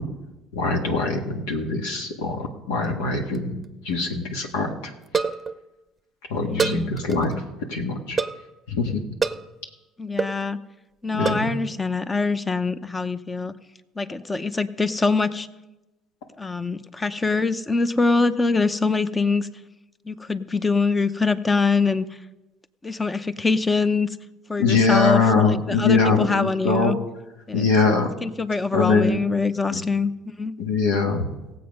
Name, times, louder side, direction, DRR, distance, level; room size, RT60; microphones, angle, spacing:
voice 1, 0.5-3.6 3.8-4.7 6.3-7.4 7.7-8.2 8.7-9.0 11.1-11.5 24.6-26.9 27.5-28.1 28.7-29.2 29.7-29.8 30.6-31.3, left 4 dB, 85° left, 2 dB, 1.7 m, -22 dB
sound 1, 2.8-3.4 3.6-3.7 3.9-4.0 5.1-5.6 6.6-7.4 8.2-8.5 9.2-9.5 10.2-10.4 11.2-11.5, right 5 dB, 25° right, 0.7 m, -26 dB
voice 2, 6.5-6.9 10.0-10.6 11.0-13.5 14.0-15.5 16.4-19.5 20.1-22.0 22.8-24.1 24.5-27.0 27.5-27.7 28.2-30.1 30.4-30.5, left 3 dB, 20° left, 13 dB, 0.7 m, -23 dB
16.5 x 7.9 x 5.3 m, 1.0 s
supercardioid pair, 85°, 0 cm